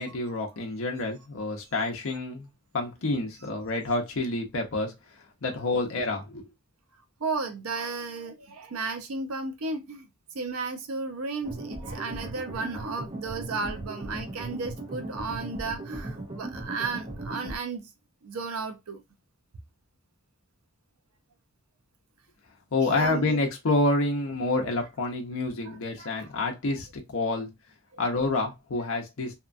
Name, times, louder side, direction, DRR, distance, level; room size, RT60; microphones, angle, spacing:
voice 1, 0.0-2.5 2.7-4.9 5.4-6.4 22.7-27.5 28.0-29.3, left 2 dB, 65° left, 0.6 m, -28 dB
voice 2, 7.2-10.1 10.3-17.9 18.2-19.0 22.8-23.4 25.6-26.3 27.3-27.4 27.9-28.0, right 4 dB, 90° right, 0.6 m, -34 dB
sound 1, 11.4-17.6, right 2 dB, 30° right, 0.6 m, -37 dB
2.8 x 2.2 x 2.4 m
head